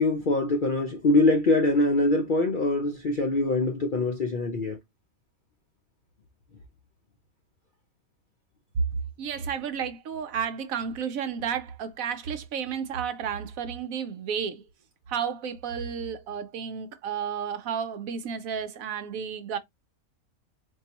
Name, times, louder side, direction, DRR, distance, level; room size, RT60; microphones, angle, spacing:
voice 1, 0.0-4.8, left 2 dB, 60° left, 0.5 m, -23 dB
voice 2, 9.2-14.6 15.1-19.6, right 7 dB, 70° right, 1.0 m, -32 dB
4.6 x 2.7 x 2.9 m
omnidirectional pair, 1.6 m